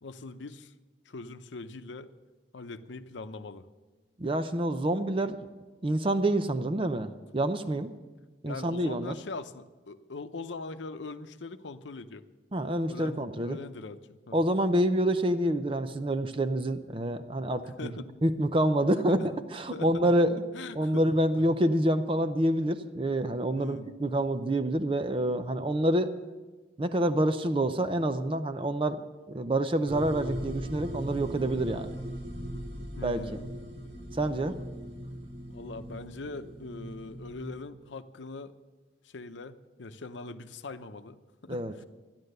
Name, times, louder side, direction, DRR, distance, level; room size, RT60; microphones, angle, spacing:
voice 1, 0.0-0.7 1.1-2.1 2.5-3.6 8.5-12.2 12.9-14.0 14.3-14.4 17.8-18.1 19.1-19.3 19.7-20.1 20.5-21.4 23.6-23.9 33.0-33.6 35.5-38.6 39.0-41.9, left 3 dB, 90° left, 11 dB, 0.7 m, -41 dB
voice 2, 4.2-5.5 5.8-7.9 8.4-9.1 12.5-13.6 14.3-17.9 18.2-19.2 19.5-20.4 20.7-26.1 26.8-29.0 29.3-32.0 33.0-33.2 34.1-34.5 41.5-41.7, right 1 dB, 30° right, 9 dB, 0.5 m, -27 dB
sound 1, 29.9-37.5, equal, 70° right, 2.5 m, -39 dB
13.0 x 10.5 x 6.6 m, 1.2 s
head